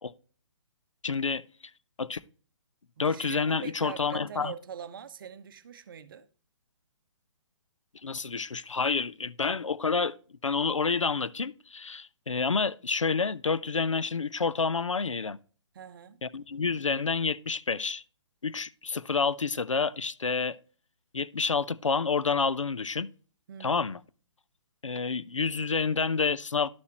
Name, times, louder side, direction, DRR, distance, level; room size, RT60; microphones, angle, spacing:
voice 1, 1.0-1.4 2.0-2.2 3.0-4.5 8.0-10.2 10.4-15.4 16.2-18.0 18.4-20.6 21.1-23.1 23.6-24.0 24.8-26.7, left 5 dB, 85° left, 0.5 m, -29 dB
voice 2, 3.0-6.3 15.7-16.2 23.5-24.0, right 7 dB, 45° right, 0.8 m, -43 dB
11.5 x 5.7 x 2.9 m
figure-of-eight pair, 135°, 16 cm